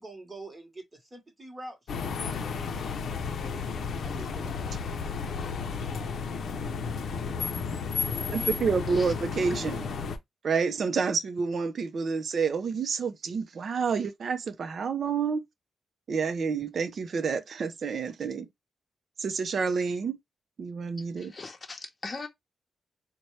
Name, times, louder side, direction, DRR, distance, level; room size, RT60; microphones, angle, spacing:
voice 1, 0.0-2.4 4.0-4.7, right 1 dB, 20° right, 1.2 m, -45 dB
sound 1, 1.9-10.2, left 5 dB, 60° left, 0.6 m, -33 dB
voice 2, 8.3-9.8 10.4-15.4 16.1-18.5 19.2-20.2 20.6-21.3, right 5 dB, 50° right, 0.5 m, -29 dB
voice 3, 21.2-22.3, left 3 dB, 25° left, 0.9 m, -40 dB
4.2 x 2.2 x 3.1 m
wide cardioid pair, 145°, 0 cm